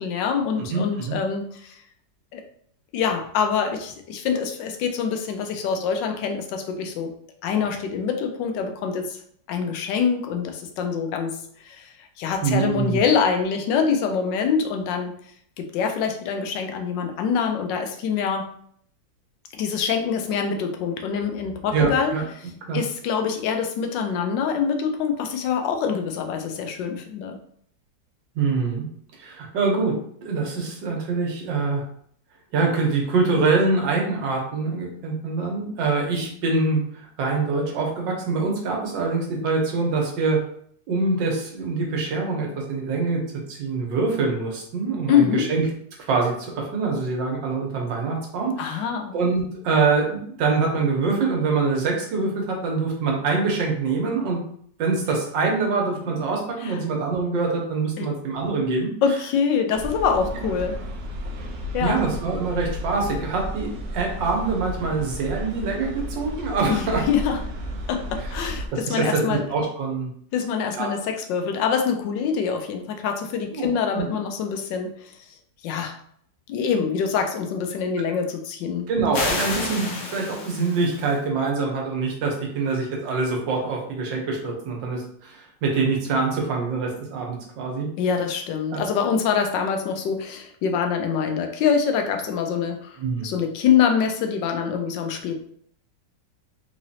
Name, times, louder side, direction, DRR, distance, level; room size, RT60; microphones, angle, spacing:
voice 1, 0.0-1.8 2.3-2.4 2.9-7.1 7.4-9.2 9.5-15.2 15.6-18.5 19.5-22.1 22.7-27.4 45.1-45.5 48.6-49.2 56.6-56.8 58.0-58.1 58.7-60.8 61.7-62.0 66.7-67.4 67.9-69.4 70.3-75.1 75.6-76.0 76.5-78.9 88.0-93.0 93.2-95.4, left 6 dB, 85° left, 5 dB, 1.3 m, -25 dB
voice 2, 0.7-1.2 12.4-13.0 21.7-22.2 22.7-22.8 28.4-28.9 29.2-30.0 30.2-31.8 32.5-40.4 40.9-43.2 43.5-45.6 46.1-54.4 54.8-58.9 61.8-63.7 63.9-67.0 68.7-70.1 70.7-70.9 73.5-73.7 74.0-74.1 78.9-87.9 88.7-88.8 93.0-93.3, right 4 dB, 85° right, 0 dB, 1.6 m, -24 dB
sound 1, 59.7-68.7, equal, 65° right, 0.7 m, -33 dB
sound 2, 79.1-81.2, left 3 dB, 65° left, 1.2 m, -30 dB
3.8 x 3.1 x 2.7 m, 0.63 s
omnidirectional pair, 1.9 m